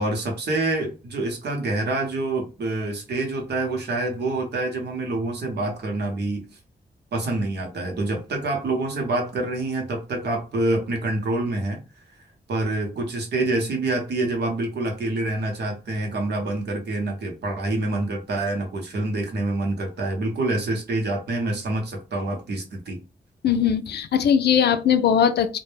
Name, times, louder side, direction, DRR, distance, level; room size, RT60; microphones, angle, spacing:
voice 1, 0.0-6.4 7.1-11.8 12.5-23.0, right 2 dB, 80° right, 0.8 m, -26 dB
voice 2, 23.4-25.6, left 8 dB, 80° left, 0.4 m, -20 dB
2.2 x 2.1 x 3.1 m
cardioid pair, 75°, 17 cm